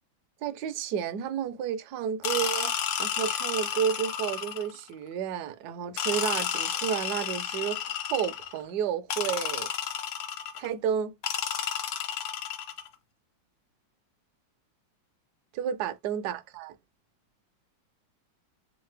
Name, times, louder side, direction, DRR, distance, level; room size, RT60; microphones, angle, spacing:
voice 1, 0.4-7.8 8.1-9.7 10.6-11.1 15.5-16.7, right 8 dB, 65° right, 1.1 m, -31 dB
sound 1, 2.2-4.8 6.0-8.6 9.1-10.7 11.2-12.9, left 9 dB, 80° left, 1.5 m, -31 dB
3.8 x 3.3 x 3.2 m
omnidirectional pair, 2.1 m